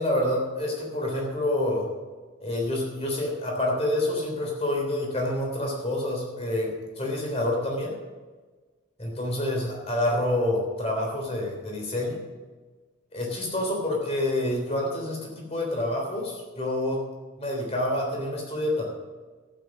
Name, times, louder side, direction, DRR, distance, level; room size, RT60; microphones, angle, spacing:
voice 1, 0.0-1.9 2.4-7.9 9.0-12.2 13.1-17.0 17.4-18.9, left 1 dB, 30° left, 0 dB, 3.5 m, -27 dB
12.5 x 9.3 x 6.1 m, 1.3 s
head